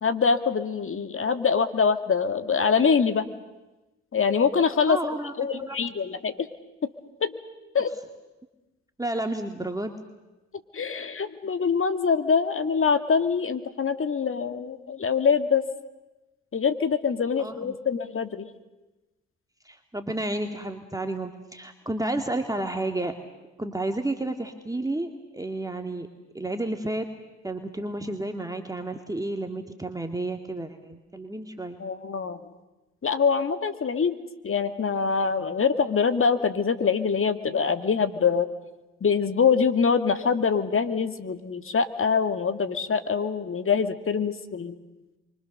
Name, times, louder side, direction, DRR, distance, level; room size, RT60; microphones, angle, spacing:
voice 1, 0.0-3.3 4.1-5.0 5.4-6.5 6.8-6.9 7.2-7.3 7.7-7.9 10.7-15.6 16.5-18.5 31.8-32.4 33.0-38.5 39.0-44.8, left 6 dB, 40° left, 9 dB, 2.2 m, -24 dB
voice 2, 4.9-5.8 9.0-9.9 17.4-17.8 19.6-23.2 23.6-26.1 26.3-27.1 27.4-31.8, right 2 dB, 10° right, 4 dB, 2.2 m, -31 dB
29.0 x 24.5 x 6.7 m, 1.1 s
hypercardioid pair, 50°, 33 cm